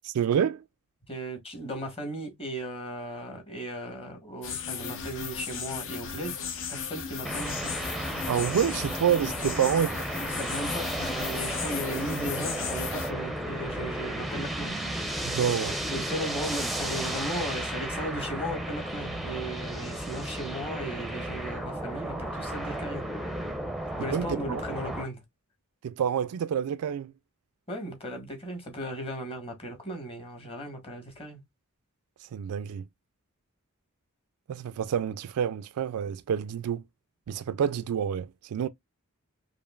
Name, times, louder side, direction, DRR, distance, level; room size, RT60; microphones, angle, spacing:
voice 1, 0.0-0.6 8.3-10.0 15.2-15.8 24.0-24.6 25.8-27.1 32.2-32.9 34.5-36.8 37.3-38.7, right 8 dB, 85° right, 0.3 m, -28 dB
voice 2, 1.1-6.3 6.7-7.8 10.4-14.8 15.9-23.1 24.0-25.2 27.7-31.4, right 1 dB, 25° left, 1.5 m, -36 dB
sound 1, 4.4-13.1, left 7 dB, 60° left, 0.7 m, -36 dB
sound 2, 7.3-25.1, right 1 dB, ahead, 0.6 m, -33 dB
4.9 x 2.5 x 2.4 m
head